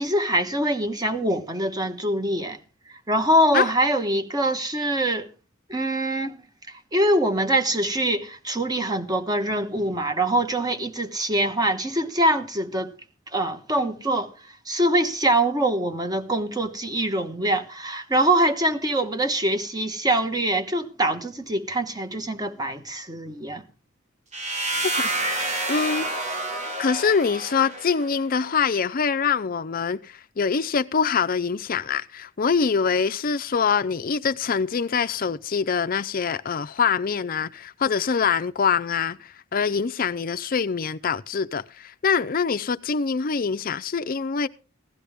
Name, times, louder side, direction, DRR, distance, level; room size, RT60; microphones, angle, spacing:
voice 1, 0.0-2.6 2.9-5.3 5.7-6.4 6.7-12.9 13.3-14.3 14.7-23.6, right 1 dB, 20° right, 1.2 m, -24 dB
sound 1, 24.3-28.2, right 2 dB, 35° right, 1.5 m, -28 dB
voice 2, 24.8-26.1 26.8-44.5, left 6 dB, 45° left, 0.5 m, -24 dB
16.0 x 11.5 x 3.5 m
head